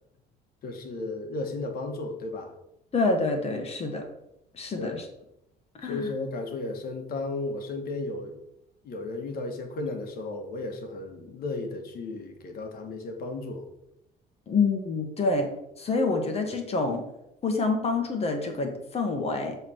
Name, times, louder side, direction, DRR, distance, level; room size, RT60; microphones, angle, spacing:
voice 1, 0.6-2.5 4.8-5.0 5.8-8.4 8.8-13.6, left 2 dB, 65° left, 4 dB, 1.3 m, -34 dB
voice 2, 2.9-4.0 4.5-5.1 5.8-6.1 14.5-15.5 15.8-17.0 17.4-19.6, left 3 dB, 35° left, 4 dB, 1.3 m, -27 dB
7.1 x 3.4 x 6.2 m, 0.83 s
cardioid pair, 110°, 17 cm